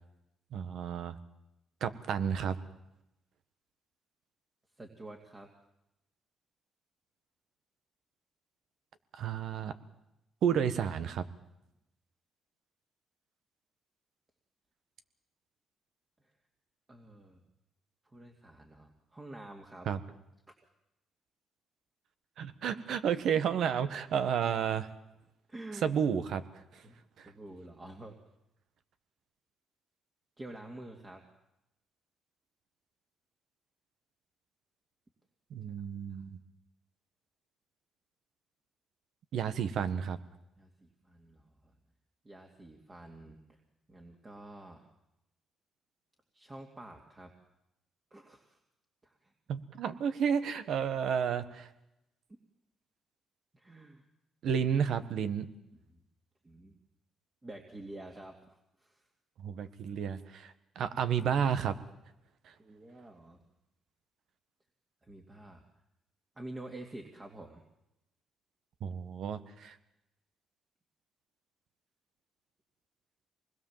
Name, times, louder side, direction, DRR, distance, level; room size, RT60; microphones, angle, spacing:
voice 1, 0.5-1.2 1.8-2.6 9.1-9.7 10.4-11.3 19.8-20.0 22.4-24.9 25.8-26.4 26.7-26.8 27.2-27.3 35.5-36.4 39.3-40.2 49.5-51.7 54.4-55.5 59.4-61.8 68.8-69.8, right 8 dB, 70° right, 11 dB, 1.5 m, -31 dB
voice 2, 4.8-5.5 16.2-16.3 16.9-17.4 18.0-19.9 25.5-26.0 26.8-28.2 30.4-31.2 36.1-36.2 40.6-41.7 42.2-43.6 43.9-44.9 46.3-47.3 48.1-48.6 49.0-49.3 53.5-54.0 55.7-56.0 56.4-56.8 57.4-59.1 62.6-63.4 65.0-65.6 66.4-67.6, right 1 dB, 25° right, 2 dB, 2.6 m, -49 dB
25.5 x 20.5 x 7.5 m, 0.87 s
cardioid pair, 90°, 0 cm